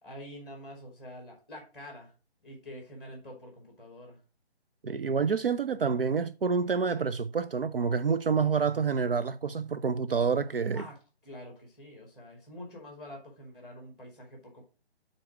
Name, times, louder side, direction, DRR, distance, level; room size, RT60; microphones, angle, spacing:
voice 1, 0.0-2.1 2.4-4.2 10.7-11.0 11.2-14.6, left 1 dB, ahead, 2.4 m, -46 dB
voice 2, 4.8-10.8, right 5 dB, 60° right, 0.5 m, -28 dB
6.2 x 4.1 x 6.0 m
figure-of-eight pair, 145°, 32 cm